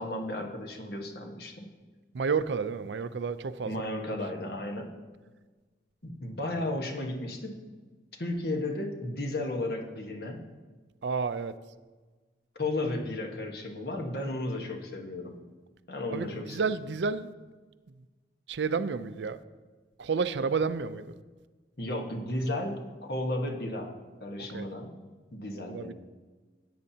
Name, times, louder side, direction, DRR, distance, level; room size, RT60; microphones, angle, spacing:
voice 1, 0.0-1.7 3.6-4.9 6.0-7.6 8.2-10.4 12.5-15.4 15.9-16.7 21.8-23.9 24.2-24.9 25.3-25.9, left 1 dB, 60° left, 3 dB, 1.3 m, -34 dB
voice 2, 2.1-3.8 11.0-11.6 16.1-17.3 18.5-19.4 20.0-21.1 24.5-24.7 25.7-25.9, right 5 dB, 75° right, 13 dB, 0.5 m, -30 dB
15.5 x 8.7 x 2.8 m, 1.3 s
head